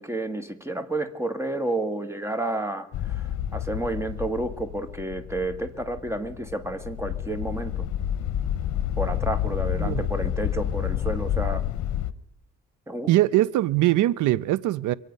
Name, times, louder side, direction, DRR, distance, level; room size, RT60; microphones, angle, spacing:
voice 1, 0.0-7.8 9.0-11.6 12.9-13.1, right 2 dB, 10° right, 1.6 m, -30 dB
sound 1, 2.9-12.1, left 11 dB, 70° left, 0.8 m, -29 dB
voice 2, 13.1-14.9, right 15 dB, 80° right, 0.5 m, -22 dB
25.0 x 8.5 x 5.3 m
cardioid pair, 90°, 30 cm